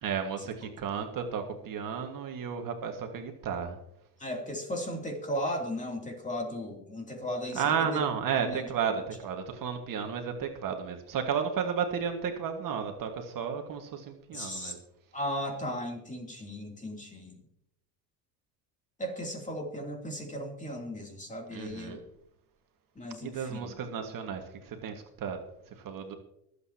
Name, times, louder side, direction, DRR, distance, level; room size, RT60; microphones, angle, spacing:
voice 1, 0.0-3.8 7.5-14.8 21.5-22.0 23.2-25.4 25.7-26.1, right 7 dB, 45° right, 4 dB, 1.8 m, -33 dB
voice 2, 4.2-8.0 8.4-8.6 14.3-14.7 15.1-17.3 19.0-22.0 22.9-23.7, equal, 15° left, 1 dB, 3.0 m, -36 dB
24.5 x 8.3 x 2.9 m, 0.78 s
supercardioid pair, 105°, 45 cm